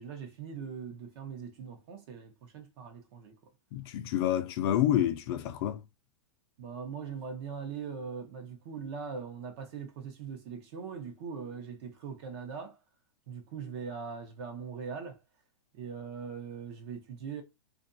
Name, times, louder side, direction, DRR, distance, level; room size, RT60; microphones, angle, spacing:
voice 1, 0.0-3.4 6.6-12.8 13.3-15.2 15.7-17.4, right 6 dB, 50° right, 0.8 m, -41 dB
voice 2, 3.7-5.8, left 11 dB, 50° left, 0.5 m, -28 dB
2.5 x 2.2 x 2.6 m
hypercardioid pair, 145°, 17 cm